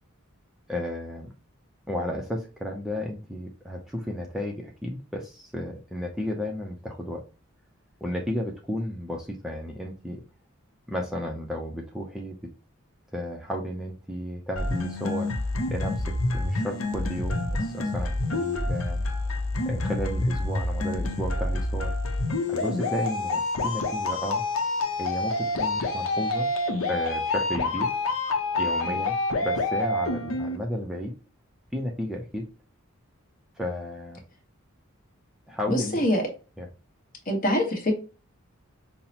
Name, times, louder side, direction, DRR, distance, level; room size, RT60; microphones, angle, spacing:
voice 1, 0.7-1.3 1.9-7.2 8.0-10.2 10.9-12.4 13.1-15.3 15.7-16.0 16.3-19.0 19.7-21.9 22.5-24.4 25.0-26.5 26.9-28.0 28.6-29.2 29.4-31.1 31.7-32.5 33.6-34.2 35.5-36.0 36.6-36.7, left 1 dB, ahead, 0 dB, 0.4 m, -33 dB
sound 1, 14.6-30.6, left 2 dB, 70° left, 0.7 m, -27 dB
voice 2, 35.7-36.2 37.3-37.9, left 1 dB, 40° left, 1 dB, 1.1 m, -24 dB
5.5 x 2.0 x 2.7 m, 0.33 s
head